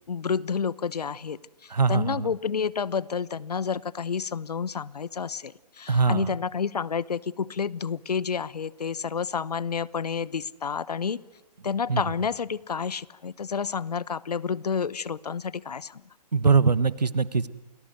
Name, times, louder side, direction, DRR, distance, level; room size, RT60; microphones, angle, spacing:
voice 1, 0.1-1.4 1.9-11.2 11.6-16.0, left 6 dB, 75° left, 22 dB, 0.9 m, -30 dB
voice 2, 1.7-2.3 5.9-6.4 11.9-12.1 16.3-17.5, right 5 dB, 85° right, 18 dB, 1.3 m, -22 dB
28.5 x 19.0 x 7.9 m, 1.1 s
figure-of-eight pair, 130°, 21 cm